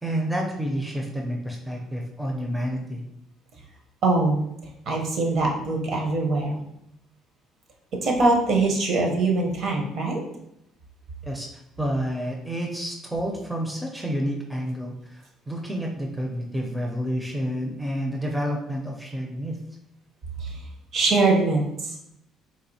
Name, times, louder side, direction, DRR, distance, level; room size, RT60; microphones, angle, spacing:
voice 1, 0.0-3.0 11.2-11.5 11.8-19.6, equal, 5° right, 0 dB, 0.5 m, -29 dB
voice 2, 4.0-4.5 4.9-6.6 8.0-10.2 20.4-20.6 20.9-22.1, right 3 dB, 55° right, 0 dB, 0.8 m, -23 dB
4.1 x 2.4 x 2.7 m, 0.80 s
cardioid pair, 125°, 0 cm